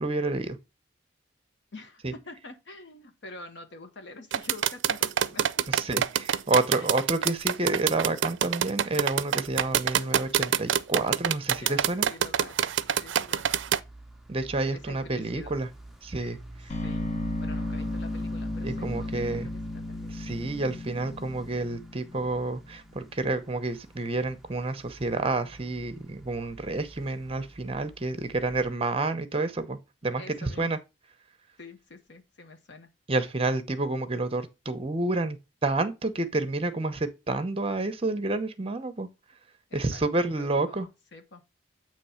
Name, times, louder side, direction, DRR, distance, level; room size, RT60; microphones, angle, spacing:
voice 1, 0.0-0.6 2.0-2.1 5.7-12.1 14.3-15.7 16.0-16.4 18.6-19.5 20.1-30.8 33.1-39.1 39.7-40.9, right 2 dB, 30° right, 0.8 m, -29 dB
voice 2, 1.7-5.8 6.8-6.9 11.6-12.6 13.0-13.6 14.7-15.6 16.8-17.0 17.4-20.2 30.2-30.8 31.6-32.9 39.7-41.4, left 2 dB, 65° left, 1.0 m, -46 dB
sound 1, 4.3-13.8, right 9 dB, 75° right, 0.4 m, -25 dB
sound 2, 9.5-28.7, right 1 dB, ahead, 0.7 m, -50 dB
sound 3, 16.7-22.7, left 1 dB, 40° left, 1.3 m, -34 dB
8.4 x 3.1 x 5.6 m
head